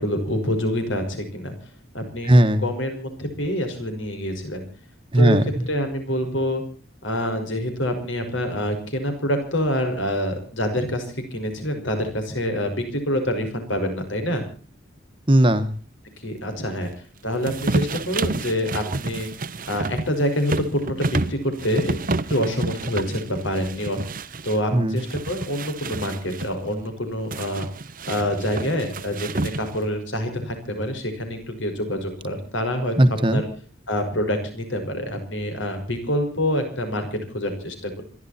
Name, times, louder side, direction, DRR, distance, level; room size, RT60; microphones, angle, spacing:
voice 1, 0.0-1.5 1.9-2.3 2.6-4.6 5.1-5.4 5.7-6.6 7.0-14.5 16.2-16.9 17.2-19.3 19.7-22.0 22.3-24.0 24.4-27.7 28.0-33.0 33.3-33.5 33.9-38.0, equal, 70° left, 6 dB, 5.7 m, -26 dB
voice 2, 2.2-2.6 5.1-5.7 15.3-15.7 24.7-25.0 33.0-33.4, right 1 dB, 25° right, 10 dB, 1.5 m, -17 dB
sound 1, 17.4-24.6 25.0-26.5 27.3-29.9, right 2 dB, 45° right, 0.9 m, -29 dB
26.5 x 12.0 x 4.4 m, 0.42 s
head